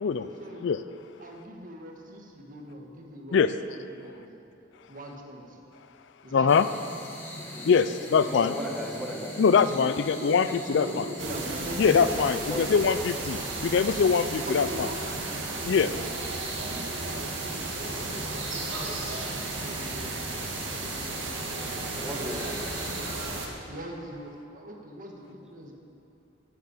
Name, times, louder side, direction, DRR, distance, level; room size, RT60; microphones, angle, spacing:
voice 1, 0.3-0.7 1.2-4.3 4.9-5.6 6.2-6.7 9.8-12.2 14.4-16.1 16.5-19.0 19.6-20.5 20.8-21.4 23.6-25.7, right 1 dB, 45° right, 1 dB, 1.6 m, -41 dB
voice 2, 6.3-6.6 7.6-8.5 9.4-10.5 10.7-10.8 11.8-14.7 15.7-15.9, left 6 dB, 65° left, 13 dB, 0.4 m, -22 dB
sound 1, 6.5-23.2, left 1 dB, 10° left, 1.9 m, -41 dB
voice 3, 7.4-7.7 8.1-9.3 12.5-12.8 22.0-22.6, equal, 5° right, -2 dB, 1.5 m, -36 dB
sound 2, 11.2-23.5, right 3 dB, 90° right, 1.8 m, -34 dB
10.5 x 8.5 x 8.2 m, 2.7 s
head